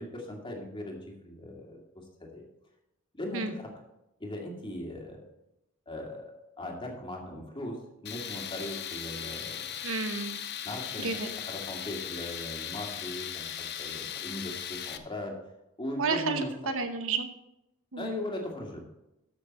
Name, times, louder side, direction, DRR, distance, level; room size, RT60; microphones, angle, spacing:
voice 1, 0.0-2.4 3.1-3.7 4.2-5.2 5.9-9.7 10.6-11.1 11.5-15.3 15.8-16.5 18.0-18.9, left 1 dB, 25° left, 0 dB, 2.3 m, -39 dB
Tools, 8.1-15.0, left 10 dB, 50° left, 0.8 m, -38 dB
voice 2, 9.8-10.4 11.0-11.3 16.0-17.3 17.9-18.2, right 4 dB, 65° right, 7 dB, 1.1 m, -31 dB
13.5 x 6.6 x 4.2 m, 0.88 s
head